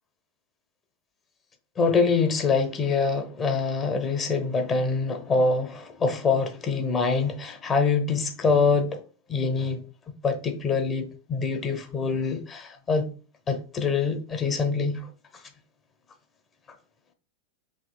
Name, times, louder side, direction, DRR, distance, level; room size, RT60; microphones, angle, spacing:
voice 1, 1.8-9.0 9.3-9.8 10.2-13.1 13.5-15.1, left 4 dB, 25° left, 0.7 m, -25 dB
5.0 x 3.0 x 2.3 m
figure-of-eight pair, 90°, 0 cm